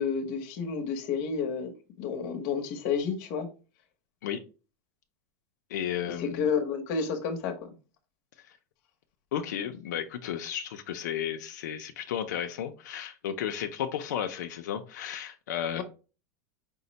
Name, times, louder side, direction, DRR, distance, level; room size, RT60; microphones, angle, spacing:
voice 1, 0.0-1.7 2.0-3.5 6.2-7.7 15.8-15.9, left 6 dB, 45° left, 1.0 m, -30 dB
voice 2, 5.7-6.5 9.3-15.8, left 9 dB, 90° left, 0.6 m, -33 dB
5.3 x 2.1 x 4.0 m
supercardioid pair, 165°, 9 cm